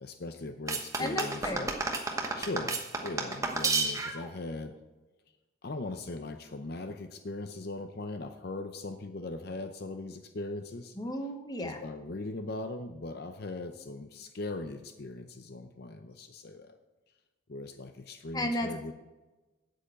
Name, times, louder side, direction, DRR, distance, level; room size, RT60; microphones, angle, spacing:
voice 1, 0.0-1.7 2.1-4.7 5.6-10.9 11.6-16.8 17.5-18.9, left 2 dB, 50° left, 8 dB, 0.6 m, -39 dB
sound 1, 0.7-4.3, right 3 dB, 15° right, 1.0 m, -31 dB
voice 2, 1.0-1.7 11.0-11.8 18.3-18.7, left 1 dB, 20° left, 5 dB, 1.0 m, -33 dB
8.5 x 7.9 x 7.8 m, 1.1 s
head